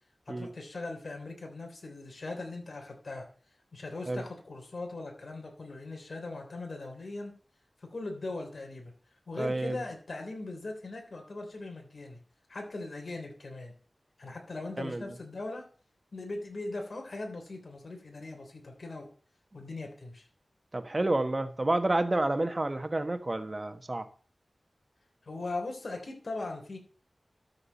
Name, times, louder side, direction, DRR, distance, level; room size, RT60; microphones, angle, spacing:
voice 1, 0.3-3.3 3.7-7.3 7.8-8.9 9.3-12.2 12.5-13.7 14.2-15.6 16.1-19.1 19.5-20.3 25.2-26.8, left 2 dB, 65° left, 2 dB, 3.2 m, -39 dB
voice 2, 9.4-9.8 14.8-15.0 20.7-24.1, right 2 dB, 35° right, 8 dB, 1.4 m, -29 dB
13.0 x 4.9 x 7.2 m, 0.42 s
wide cardioid pair, 60°, 0 cm